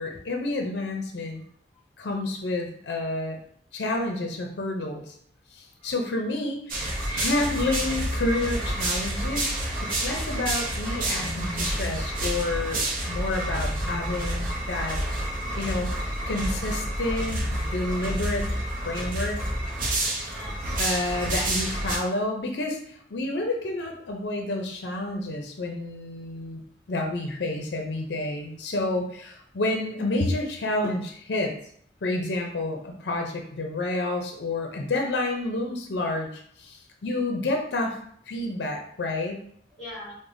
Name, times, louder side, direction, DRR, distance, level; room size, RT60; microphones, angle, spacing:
voice 1, 0.0-1.4 2.0-3.4 3.7-5.1 5.5-9.5 9.8-15.0 15.6-19.4 20.8-26.6 26.9-31.5 32.0-38.0 38.3-39.4, left 2 dB, 75° left, 3 dB, 0.5 m, -29 dB
sound 1, 6.7-22.0, right 1 dB, 50° right, 0.6 m, -29 dB
voice 2, 11.0-11.8 13.7-14.2 20.2-20.8 39.7-40.2, left 1 dB, 5° left, -10 dB, 1.2 m, -40 dB
4.8 x 2.1 x 2.6 m, 0.64 s
head